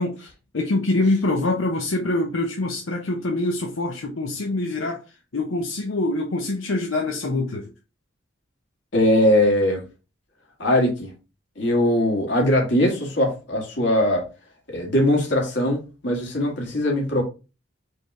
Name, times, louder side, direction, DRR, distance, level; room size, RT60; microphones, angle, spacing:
voice 1, 0.0-5.0 5.3-7.7, left 2 dB, 90° left, 0.7 m, -25 dB
voice 2, 8.9-9.8 10.6-11.1 11.6-14.2 14.7-17.2, left 1 dB, 60° left, 1.8 m, -20 dB
4.4 x 3.3 x 3.6 m
head